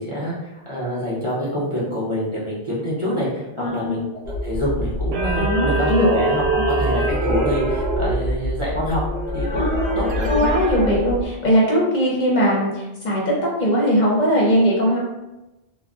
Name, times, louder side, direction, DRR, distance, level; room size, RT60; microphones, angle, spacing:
voice 1, 0.0-4.0 4.4-9.0 9.3-10.5, equal, 35° right, -8 dB, 0.6 m, -26 dB
voice 2, 3.6-4.0 5.3-6.1 6.6-6.7 9.5-15.0, equal, 50° left, -4 dB, 0.7 m, -20 dB
sound 1, 4.2-11.3, right 1 dB, 80° right, 0.9 m, -23 dB
3.6 x 2.0 x 2.3 m, 1.0 s
omnidirectional pair, 1.1 m